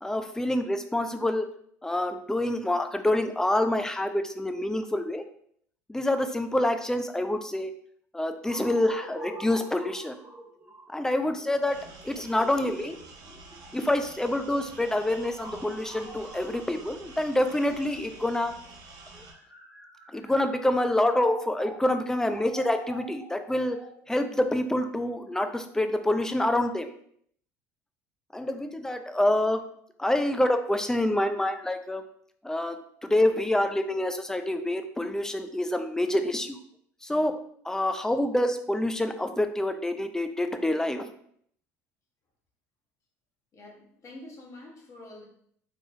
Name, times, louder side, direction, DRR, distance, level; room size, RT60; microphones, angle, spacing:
voice 1, 0.0-1.5 1.8-5.2 5.9-7.7 8.1-10.2 10.9-13.0 13.7-18.5 20.1-23.8 24.1-26.9 28.3-29.6 30.0-32.0 32.4-36.6 37.0-37.4 37.6-41.1, left 1 dB, 5° left, 8 dB, 0.4 m, -27 dB
sound 1, 8.4-18.3 19.0-26.0, right 1 dB, 20° right, 1.3 m, -45 dB
sound 2, 11.6-19.3, right 3 dB, 55° right, 1.0 m, -48 dB
voice 2, 43.5-45.2, left 2 dB, 40° left, -1 dB, 1.2 m, -46 dB
3.8 x 3.0 x 2.6 m, 0.65 s
hypercardioid pair, 75°, 8 cm